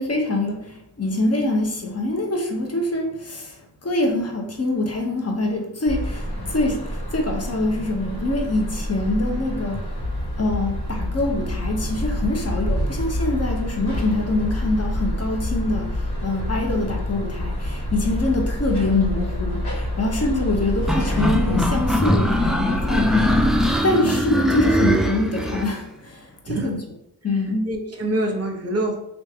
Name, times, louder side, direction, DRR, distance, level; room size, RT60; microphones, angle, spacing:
voice 1, 0.0-3.6 3.8-9.8 10.4-23.4 23.8-26.8 27.2-27.7, left 2 dB, 40° left, 2 dB, 0.8 m, -24 dB
sound 1, 5.9-23.8, equal, 80° left, 1.3 m, -27 dB
sound 2, 20.9-25.7, equal, ahead, 0.3 m, -21 dB
voice 2, 26.5-26.8 27.7-29.0, right 1 dB, 40° right, 2 dB, 0.8 m, -26 dB
3.1 x 2.6 x 3.5 m, 0.82 s
wide cardioid pair, 60°, 39 cm